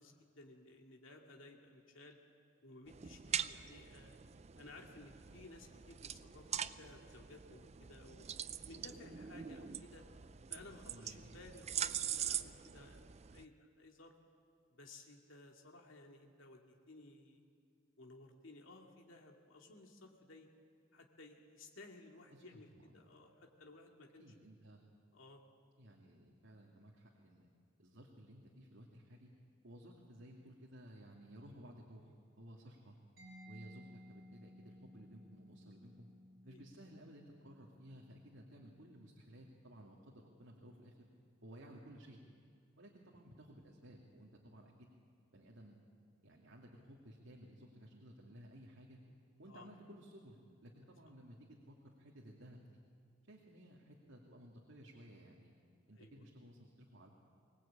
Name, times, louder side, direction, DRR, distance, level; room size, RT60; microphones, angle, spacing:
voice 1, 0.0-2.2 2.6-4.2 4.6-6.5 6.8-8.2 8.7-10.1 10.5-14.1 14.7-17.4 18.0-20.5 20.9-24.2 25.1-25.4 36.5-36.6 49.5-49.7 55.9-56.2, left 2 dB, 75° left, 1 dB, 2.3 m, -57 dB
sound 1, 2.9-13.4, right 9 dB, 35° right, 0.5 m, -43 dB
voice 2, 10.9-11.3 22.3-23.1 24.2-24.8 25.8-27.5 27.8-29.3 29.6-33.0 33.5-36.1 36.4-41.1 41.4-42.2 42.8-44.9 45.3-45.8 46.2-49.0 49.4-52.6 53.3-55.5 55.9-57.1, equal, 70° right, -1 dB, 2.4 m, -57 dB
Mallet percussion, 33.2-40.7, equal, 50° right, 7.2 m, -60 dB
23.5 x 19.0 x 8.7 m, 2.2 s
head